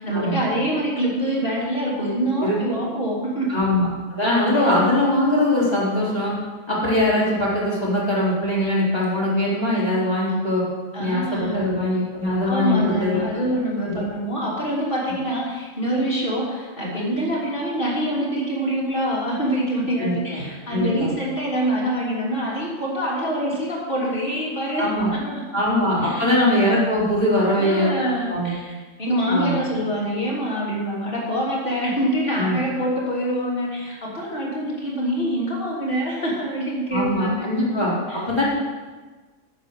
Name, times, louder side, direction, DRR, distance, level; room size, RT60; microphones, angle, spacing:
voice 1, 0.0-3.5 4.5-4.6 10.9-11.6 12.5-25.4 26.0-26.3 27.6-37.5 38.1-38.2, right 1 dB, 40° left, -6 dB, 3.5 m, -25 dB
voice 2, 3.5-6.3 6.7-10.6 11.0-13.2 13.8-14.0 20.0-20.4 20.7-21.1 24.8-25.1 25.5-27.9 28.3-28.6 29.3-29.6 32.4-32.6 36.9-38.4, left 1 dB, 20° left, -8 dB, 3.9 m, -21 dB
9.7 x 8.3 x 6.8 m, 1.3 s
omnidirectional pair, 1.4 m